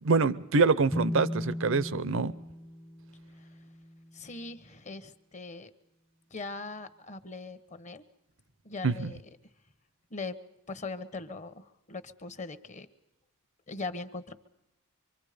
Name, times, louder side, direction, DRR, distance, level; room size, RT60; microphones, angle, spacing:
voice 1, 0.0-2.3 8.8-9.1, right 4 dB, 65° right, 18 dB, 0.7 m, -25 dB
sound 1, 0.9-4.5, equal, 5° left, 0.7 m, -37 dB
voice 2, 4.1-5.7 6.3-8.0 8.6-9.2 10.1-10.4 10.7-12.9 13.7-14.3, left 3 dB, 35° left, 11 dB, 1.1 m, -40 dB
25.0 x 24.5 x 5.1 m, 0.85 s
head